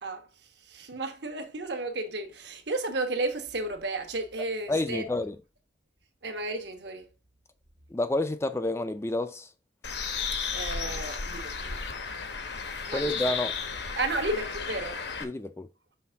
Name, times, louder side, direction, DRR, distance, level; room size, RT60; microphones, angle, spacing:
voice 1, 0.7-5.1 6.2-7.1 10.5-11.8 12.9-13.4 13.9-15.0, right 2 dB, 65° right, 1.2 m, -33 dB
voice 2, 4.7-5.4 7.9-9.5 12.9-13.6 15.2-15.7, left 2 dB, 15° left, 0.3 m, -29 dB
Bird, 9.8-15.2, left 5 dB, 65° left, 0.9 m, -34 dB
5.7 x 3.4 x 5.7 m
head